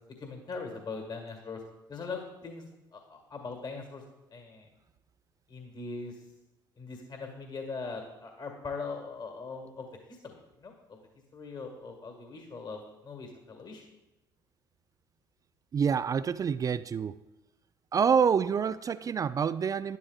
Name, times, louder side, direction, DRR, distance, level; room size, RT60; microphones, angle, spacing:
voice 1, 0.2-1.6 1.9-4.0 4.3-4.7 5.5-6.2 6.8-11.0 11.3-13.8, left 4 dB, 40° left, 3 dB, 1.8 m, -41 dB
voice 2, 15.7-17.2 17.9-20.0, right 6 dB, 30° right, 14 dB, 0.4 m, -27 dB
12.0 x 11.0 x 2.4 m, 1.0 s
hypercardioid pair, 60°, 12 cm